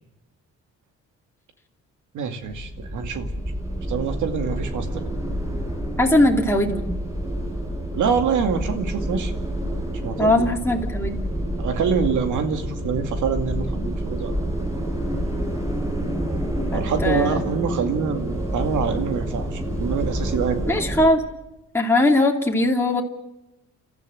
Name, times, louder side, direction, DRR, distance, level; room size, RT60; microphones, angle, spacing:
voice 1, 2.1-3.3 3.9-5.1 7.9-9.3 10.0-10.5 11.6-14.4 16.7-20.8, right 6 dB, 80° right, 6 dB, 2.4 m, -25 dB
sound 1, 2.5-21.1, equal, 10° right, 5.9 m, -28 dB
voice 2, 6.0-6.9 10.2-11.3 16.7-17.4 20.7-21.2 21.7-23.0, left 1 dB, 10° left, 0 dB, 2.7 m, -20 dB
29.5 x 13.5 x 7.7 m, 0.99 s
cardioid pair, 90°, 30 cm